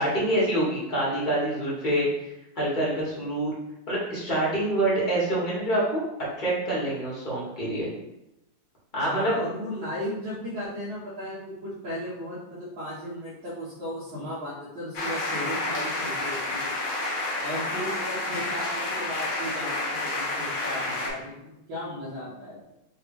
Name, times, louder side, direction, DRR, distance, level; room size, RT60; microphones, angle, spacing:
voice 1, 0.0-2.1 2.5-3.6 3.9-6.0 6.4-7.9 8.9-9.3, right 1 dB, 25° left, -6 dB, 1.4 m, -26 dB
voice 2, 9.0-16.8 17.4-22.6, equal, 75° right, -9 dB, 1.9 m, -36 dB
sound 1, 14.9-21.1, left 2 dB, 50° left, 1.2 m, -30 dB
4.0 x 3.4 x 3.0 m, 0.87 s
omnidirectional pair, 2.2 m